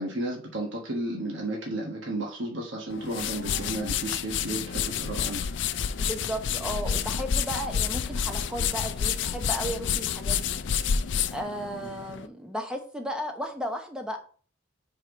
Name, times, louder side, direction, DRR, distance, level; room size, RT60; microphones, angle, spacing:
voice 1, 0.0-5.4 11.8-11.9, right 1 dB, 65° right, -1 dB, 1.4 m, -33 dB
sound 1, 2.9-12.3, left 7 dB, 60° left, 0.4 m, -29 dB
voice 2, 6.0-10.6 11.3-14.2, equal, 5° right, 4 dB, 0.8 m, -34 dB
4.9 x 4.5 x 4.9 m, 0.42 s
head